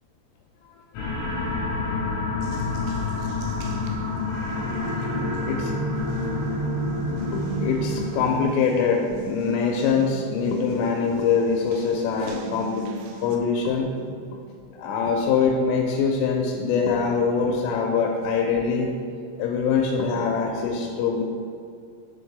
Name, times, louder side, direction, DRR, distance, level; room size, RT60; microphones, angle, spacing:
sound 1, 0.9-8.5, left 2 dB, 70° left, 3.1 m, -28 dB
Water tap faucet, 2.4-13.4, right 4 dB, 80° right, 2.7 m, -38 dB
voice 1, 7.3-12.9 13.2-13.9 14.3-14.4 14.8-18.9 19.4-21.2, left 5 dB, 90° left, 0 dB, 3.2 m, -23 dB
10.0 x 4.3 x 3.3 m, 2.4 s
omnidirectional pair, 5.8 m